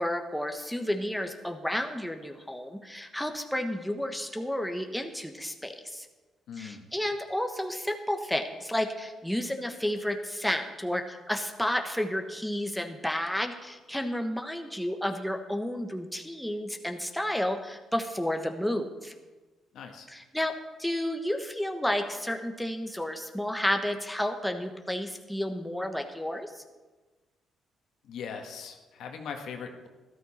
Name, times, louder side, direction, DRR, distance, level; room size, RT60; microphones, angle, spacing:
voice 1, 0.0-6.1 6.6-19.1 20.1-20.5 20.8-26.6, left 1 dB, 5° left, 4 dB, 1.2 m, -31 dB
voice 2, 6.5-6.9 19.7-20.1 28.0-29.9, left 6 dB, 75° left, 3 dB, 1.6 m, -40 dB
13.0 x 13.0 x 4.3 m, 1.3 s
cardioid pair, 90°, 0 cm